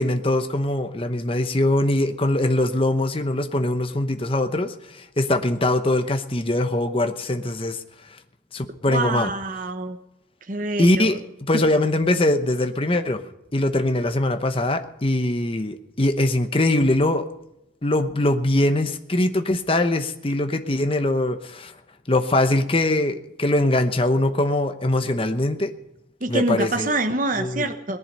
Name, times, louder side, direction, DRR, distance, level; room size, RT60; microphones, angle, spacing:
voice 1, 0.0-7.8 8.5-9.3 10.8-13.2 13.5-17.2 17.8-21.7 22.1-25.7 26.3-26.9 27.4-27.7, left 1 dB, 30° left, 7 dB, 0.9 m, -22 dB
voice 2, 8.9-10.0 10.5-11.1 11.5-11.6 26.2-28.0, right 2 dB, 40° right, 6 dB, 1.0 m, -25 dB
19.0 x 11.0 x 5.4 m, 0.88 s
head